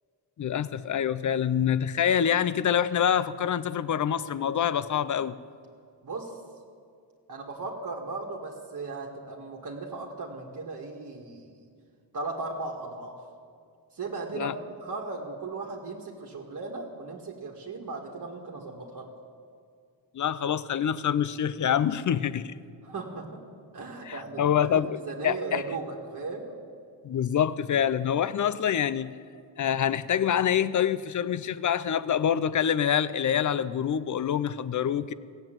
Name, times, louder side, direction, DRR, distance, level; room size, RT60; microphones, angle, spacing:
voice 1, 0.4-5.4 14.3-14.5 20.1-22.5 24.0-25.6 27.0-29.1 29.6-35.1, left 9 dB, 40° left, 17 dB, 0.6 m, -26 dB
voice 2, 7.3-11.6 12.1-13.2 13.9-19.1 22.8-23.4 23.7-26.6, right 3 dB, 45° right, -2 dB, 1.9 m, -37 dB
16.0 x 7.8 x 9.1 m, 2.2 s
cardioid pair, 80°, 44 cm